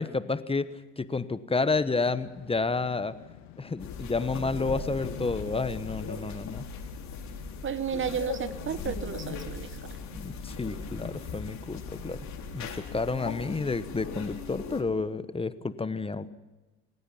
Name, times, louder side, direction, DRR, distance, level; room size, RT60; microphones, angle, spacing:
voice 1, 0.0-3.2 3.6-6.7 10.1-12.2 12.5-16.3, left 3 dB, 15° left, 14 dB, 1.1 m, -30 dB
sound 1, 1.6-14.3, left 11 dB, 80° left, 2.1 m, -50 dB
sound 2, 3.8-14.8, left 4 dB, 50° left, 4.4 m, -39 dB
voice 2, 7.6-9.7, right 8 dB, 35° right, 16 dB, 0.9 m, -32 dB
28.5 x 16.5 x 5.8 m, 1.1 s
hypercardioid pair, 75°, 36 cm